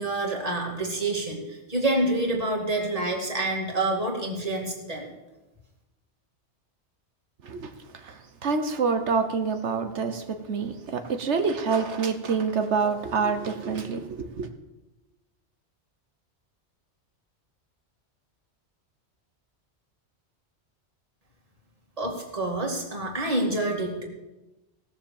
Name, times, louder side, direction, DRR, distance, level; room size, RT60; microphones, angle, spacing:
voice 1, 0.0-5.0 22.0-24.0, right 2 dB, 35° right, 2.5 m, -27 dB
voice 2, 8.0-14.5, right 5 dB, 75° right, 1.3 m, -27 dB
17.0 x 7.2 x 7.2 m
omnidirectional pair, 1.2 m